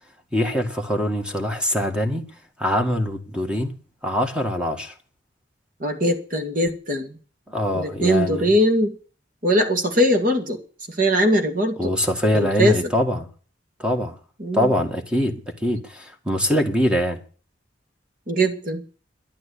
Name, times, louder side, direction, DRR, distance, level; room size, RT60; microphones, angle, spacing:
voice 1, 0.3-2.2 2.6-3.7 4.0-4.9 7.5-8.5 11.8-13.3 13.8-14.2 14.5-17.2, equal, 5° right, 1.8 m, -23 dB
voice 2, 5.8-7.2 7.7-8.9 9.4-10.6 11.0-11.9 12.3-12.8 14.4-14.7 18.3-18.8, equal, 50° right, 2.3 m, -21 dB
12.5 x 10.5 x 8.5 m
head